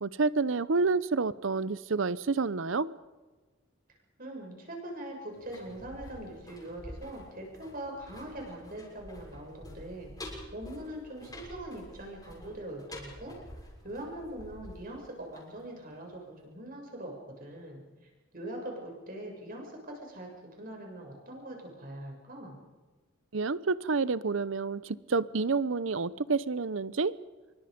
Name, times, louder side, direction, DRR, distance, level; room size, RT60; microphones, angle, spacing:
voice 1, 0.0-2.9 23.3-27.1, right 4 dB, 75° right, 18 dB, 0.8 m, -29 dB
voice 2, 4.2-13.3 13.8-17.8 18.3-22.6, right 1 dB, 45° right, 1 dB, 6.9 m, -42 dB
sound 1, 5.3-16.1 16.4-16.5, left 1 dB, 20° left, 6.7 m, -48 dB
26.5 x 23.5 x 5.2 m, 1.3 s
head